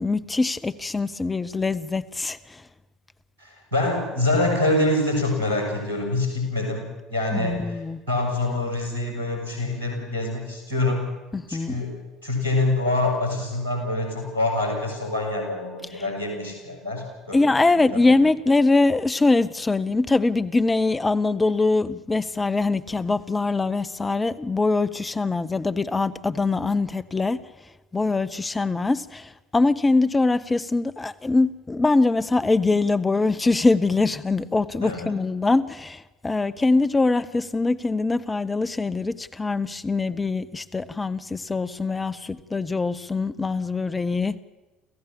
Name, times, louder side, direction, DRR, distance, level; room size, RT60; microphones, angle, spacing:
voice 1, 0.0-2.6 7.3-8.0 11.3-11.8 17.3-27.4 27.9-44.4, left 3 dB, 15° left, 0.8 m, -23 dB
voice 2, 3.4-7.6 8.1-11.1 11.5-11.9 12.2-17.4 17.7-17.9 34.8-35.1, left 2 dB, 80° right, 6.7 m, -25 dB
28.0 x 15.5 x 7.2 m
figure-of-eight pair, 60°, 0 cm